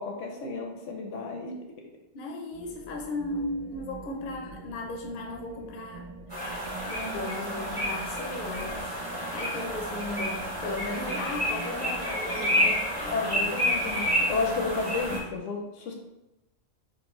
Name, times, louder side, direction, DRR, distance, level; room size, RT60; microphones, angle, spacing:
voice 1, 0.0-1.5 13.1-15.9, left 4 dB, 75° left, 2 dB, 0.9 m, -32 dB
voice 2, 2.1-6.6 6.9-9.0 9.3-13.5, left 2 dB, 55° left, 1 dB, 0.6 m, -36 dB
sound 1, 2.5-15.4, right 4 dB, 65° right, 1.6 m, -45 dB
sound 2, 6.3-15.2, equal, 30° right, 0.9 m, -30 dB
3.8 x 2.0 x 3.0 m, 0.93 s
omnidirectional pair, 1.3 m